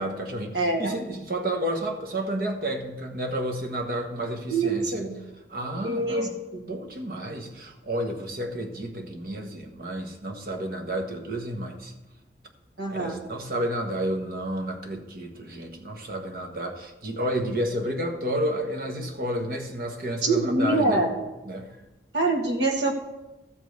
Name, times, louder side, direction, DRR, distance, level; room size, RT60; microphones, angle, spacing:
voice 1, 0.0-5.1 5.5-11.9 12.9-21.0 21.4-21.8, right 1 dB, 55° right, 3 dB, 1.3 m, -31 dB
voice 2, 0.5-0.9 4.5-5.1 5.8-6.3 12.8-13.2 20.2-21.2 22.1-22.9, right 2 dB, 85° right, 2 dB, 1.8 m, -24 dB
13.0 x 5.2 x 7.8 m, 1.0 s
head